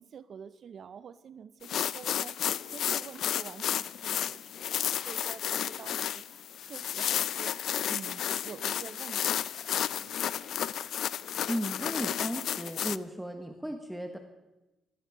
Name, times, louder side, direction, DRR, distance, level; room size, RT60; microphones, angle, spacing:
voice 1, 0.0-10.5, right 7 dB, 55° right, 14 dB, 0.6 m, -48 dB
sound 1, 1.6-13.0, left 10 dB, 70° left, 0.4 m, -32 dB
voice 2, 11.4-14.2, equal, ahead, 5 dB, 1.2 m, -35 dB
17.0 x 13.5 x 5.0 m, 1.0 s
cardioid pair, 90°, 0 cm